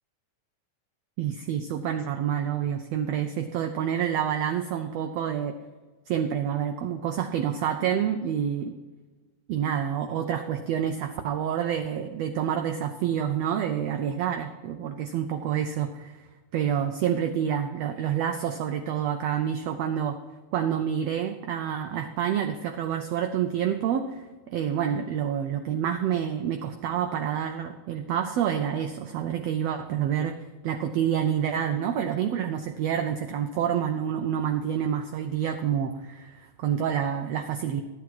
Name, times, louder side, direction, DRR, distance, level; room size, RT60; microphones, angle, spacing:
voice 1, 1.2-5.5 6.1-8.8 9.5-16.1 16.5-20.2 20.5-37.8, right 9 dB, 90° right, 7 dB, 1.4 m, -28 dB
12.5 x 8.3 x 4.6 m, 1.3 s
omnidirectional pair, 3.7 m